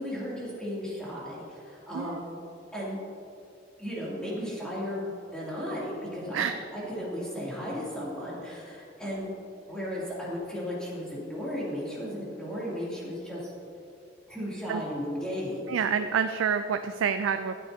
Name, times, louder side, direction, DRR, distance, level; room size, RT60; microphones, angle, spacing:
voice 1, 0.0-2.3 2.7-3.0 3.8-9.3 9.7-13.5 14.3-15.6, equal, 5° left, -7 dB, 2.5 m, -35 dB
voice 2, 15.7-17.6, right 7 dB, 85° right, 9 dB, 0.4 m, -28 dB
14.5 x 8.7 x 2.7 m, 2.6 s
head